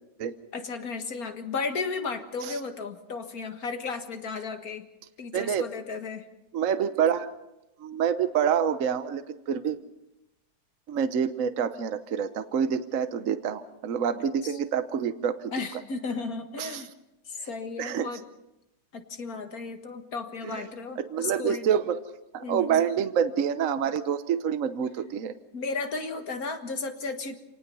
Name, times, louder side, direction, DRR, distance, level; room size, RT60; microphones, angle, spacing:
voice 1, 0.5-4.9 5.2-6.3 14.4-14.6 15.5-16.9 17.3-18.2 18.9-21.7 22.4-22.8 25.5-27.4, left 4 dB, 55° left, 7 dB, 2.0 m, -34 dB
voice 2, 5.3-5.7 6.5-7.3 7.8-9.8 10.9-15.5 16.6-16.8 17.8-18.1 20.4-20.6 21.0-22.0 22.3-25.3, right 8 dB, 55° right, 10 dB, 1.2 m, -27 dB
27.0 x 19.0 x 5.5 m, 0.90 s
omnidirectional pair, 1.8 m